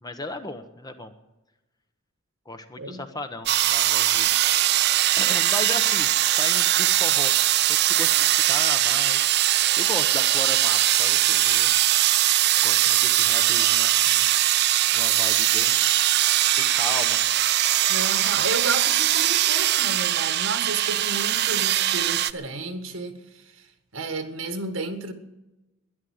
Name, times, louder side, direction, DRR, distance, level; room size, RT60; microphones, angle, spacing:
voice 1, 0.0-1.1 2.5-4.3 4.6-7.3 7.9-9.3 9.8-11.7 12.6-14.3 14.9-15.8 16.5-17.2, left 2 dB, 20° left, 1.0 m, -36 dB
sound 1, 3.5-22.3, right 13 dB, 50° right, 0.5 m, -21 dB
voice 2, 17.9-23.7 23.9-25.1, right 3 dB, 75° right, 1.7 m, -32 dB
12.5 x 11.0 x 9.4 m
head